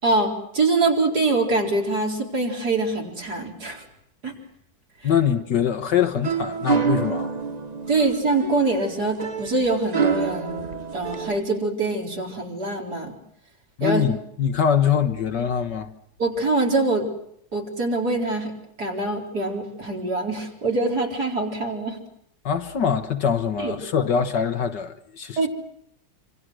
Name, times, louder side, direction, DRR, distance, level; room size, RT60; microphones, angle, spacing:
voice 1, 0.0-3.8 4.2-4.3 7.9-10.7 10.9-13.1 13.8-14.0 16.2-17.1 17.5-18.5 18.8-22.0 23.6-23.7 25.4-25.5, right 3 dB, 50° right, 4.8 m, -24 dB
voice 2, 5.0-7.3 13.8-15.9 22.4-25.5, left 8 dB, 60° left, 1.8 m, -23 dB
sound 1, 5.9-11.4, right 6 dB, 30° right, 0.8 m, -27 dB
27.0 x 26.5 x 6.3 m
omnidirectional pair, 2.2 m